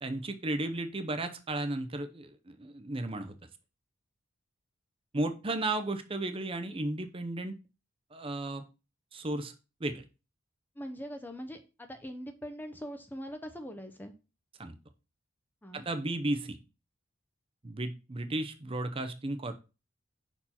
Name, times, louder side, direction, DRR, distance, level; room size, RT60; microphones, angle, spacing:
voice 1, 0.0-3.4 5.1-7.5 8.1-8.6 9.1-9.5 9.8-10.0 14.6-14.7 15.7-16.6 17.6-19.5, right 2 dB, 25° right, 8 dB, 0.6 m, -34 dB
voice 2, 10.8-14.1 15.6-15.9, equal, 10° left, 6 dB, 0.6 m, -42 dB
5.6 x 4.5 x 4.2 m, 0.30 s
head